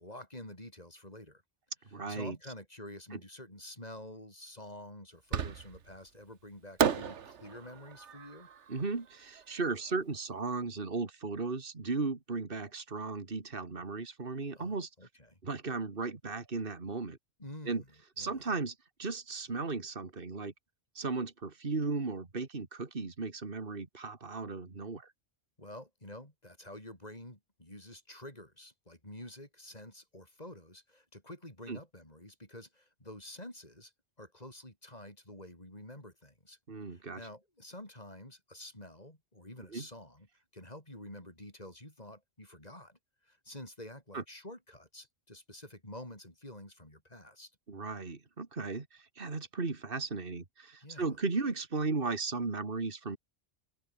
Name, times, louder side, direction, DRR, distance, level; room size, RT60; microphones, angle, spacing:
voice 1, 0.0-1.4 2.1-8.5 14.5-15.4 17.4-17.9 18.2-18.4 25.6-33.9 34.2-36.6 36.9-40.3 40.5-47.5 50.8-51.2, left 1 dB, 35° left, 6.6 m, -49 dB
voice 2, 1.9-2.4 3.1-3.2 8.7-14.9 15.4-17.2 17.7-17.8 18.2-20.5 21.0-25.1 31.7-31.8 36.7-37.2 39.7-39.9 44.1-44.2 47.7-53.2, right 4 dB, 50° right, 2.4 m, -36 dB
Fireworks, 5.3-6.0 6.8-9.9, right 7 dB, 85° right, 1.5 m, -34 dB
open air
omnidirectional pair, 1.2 m